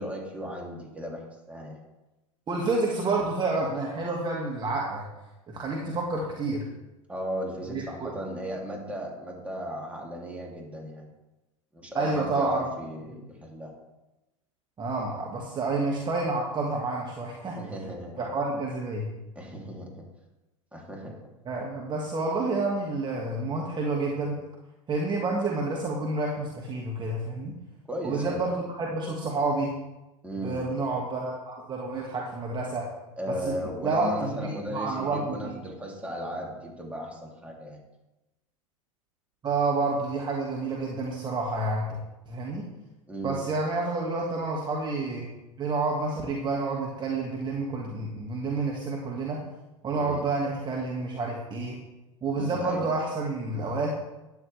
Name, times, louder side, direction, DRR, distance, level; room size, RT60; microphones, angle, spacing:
voice 1, 0.0-1.8 7.1-11.1 11.7-13.7 17.5-18.3 19.3-20.0 20.7-21.2 27.9-28.4 30.2-30.7 33.2-37.8 43.1-43.4 49.9-50.2 52.3-52.9, equal, 5° right, -1 dB, 2.9 m, -36 dB
voice 2, 2.5-5.1 5.5-6.7 7.7-8.1 12.0-12.6 14.8-17.6 18.2-19.1 21.5-24.4 24.9-27.5 28.0-29.7 30.4-32.9 33.3-33.6 33.8-35.5 39.4-41.9 42.3-42.6 43.2-45.3 45.6-49.4 49.8-51.8 52.2-54.0, right 3 dB, 25° right, -2 dB, 1.9 m, -29 dB
12.5 x 9.9 x 3.4 m, 0.99 s
hypercardioid pair, 90°, 18 cm